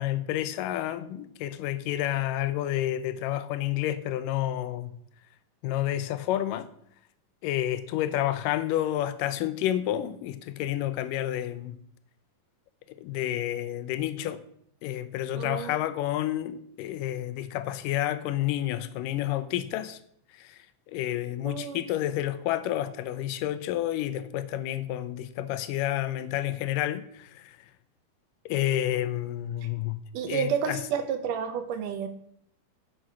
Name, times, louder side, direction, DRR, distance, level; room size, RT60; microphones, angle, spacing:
voice 1, 0.0-4.9 5.6-6.7 7.4-11.8 13.0-14.4 14.8-20.0 20.4-20.6 20.9-27.6 28.5-30.0 30.3-30.8, left 13 dB, 85° left, 2.2 m, -30 dB
voice 2, 15.4-15.7 21.4-21.8 30.1-32.1, right 7 dB, 75° right, 2.5 m, -30 dB
8.9 x 6.9 x 6.1 m
omnidirectional pair, 3.9 m